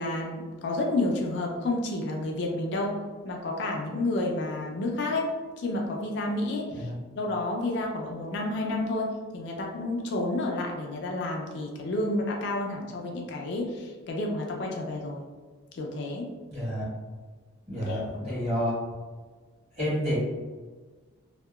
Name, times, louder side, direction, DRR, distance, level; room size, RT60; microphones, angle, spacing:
voice 1, 0.0-3.0 3.2-6.9 7.2-15.2 15.7-16.3 17.8-18.0, left 2 dB, 55° left, 0 dB, 0.4 m, -30 dB
voice 2, 16.5-16.9 17.7-18.7 19.8-20.2, equal, 35° right, -9 dB, 1.4 m, -29 dB
2.8 x 2.1 x 2.2 m, 1.4 s
head